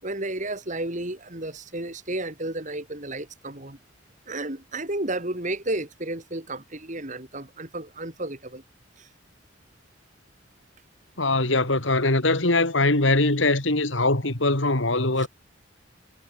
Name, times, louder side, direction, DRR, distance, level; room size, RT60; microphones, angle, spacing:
voice 1, 0.0-3.8 4.3-8.6 9.0-9.1 15.2-15.3, right 2 dB, 40° right, 3.2 m, -32 dB
voice 2, 11.2-15.3, left 2 dB, 70° left, 3.3 m, -22 dB
head